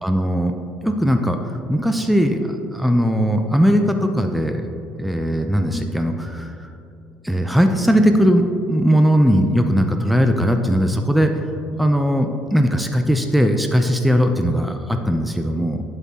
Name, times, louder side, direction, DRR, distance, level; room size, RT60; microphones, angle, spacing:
voice 1, 0.0-0.5 0.8-1.4 1.7-4.6 5.0-6.7 7.2-11.3 11.8-15.8, equal, ahead, 5 dB, 0.6 m, -19 dB
9.4 x 7.9 x 2.9 m, 2.6 s
figure-of-eight pair, 55°, 5 cm